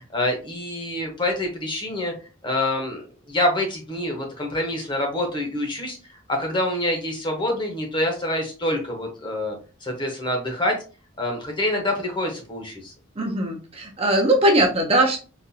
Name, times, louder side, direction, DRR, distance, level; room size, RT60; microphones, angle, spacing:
voice 1, 0.0-2.1 2.4-6.0 6.3-9.5 9.8-10.8 11.2-12.9, left 1 dB, 25° left, 1 dB, 0.9 m, -26 dB
voice 2, 13.2-15.2, right 1 dB, 30° right, 1 dB, 0.6 m, -20 dB
4.0 x 2.5 x 2.6 m, 0.35 s
head